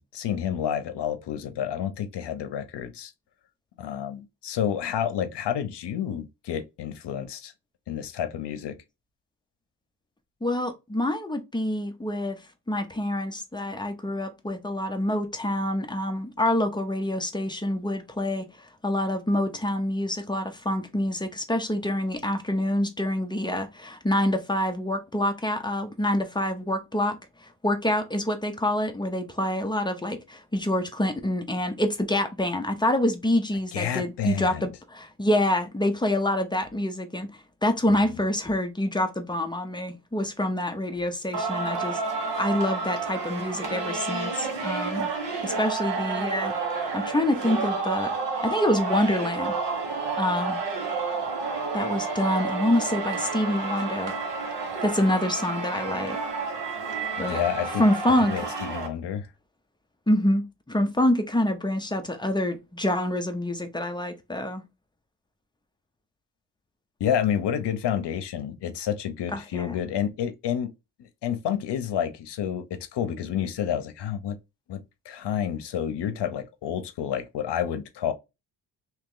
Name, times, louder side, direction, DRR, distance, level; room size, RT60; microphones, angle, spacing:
voice 1, 0.0-3.1 3.8-7.5 7.9-8.7 33.7-34.7 38.0-38.2 57.2-57.8 58.2-59.3 67.0-70.7 71.0-74.4 74.7-74.8 75.1-78.1, left 9 dB, 75° left, 0.7 m, -29 dB
voice 2, 10.4-12.4 12.7-18.4 18.8-42.0 42.4-45.1 45.4-46.5 46.9-48.1 48.4-49.6 50.2-50.6 51.7-54.1 54.8-56.2 57.2-57.4 57.8-58.3 60.1-64.6 69.3-69.8, left 1 dB, 10° left, 0.6 m, -26 dB
Singing, 41.3-58.9, right 4 dB, 85° right, 1.4 m, -30 dB
3.0 x 2.9 x 3.7 m
wide cardioid pair, 135°, 41 cm